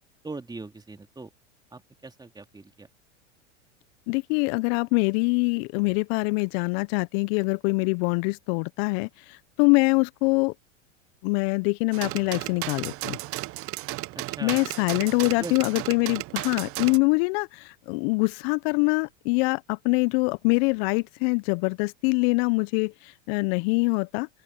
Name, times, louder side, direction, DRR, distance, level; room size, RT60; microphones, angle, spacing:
voice 1, 0.2-1.3 1.7-2.9 14.1-14.6 15.4-15.5, right 3 dB, 10° right, 2.9 m, -40 dB
voice 2, 4.1-10.5 11.2-13.2 14.4-24.3, left 30 dB, 50° left, 0.8 m, -24 dB
sound 1, 11.9-17.0, right 20 dB, 40° right, 0.7 m, -34 dB
open air
hypercardioid pair, 90°, 37 cm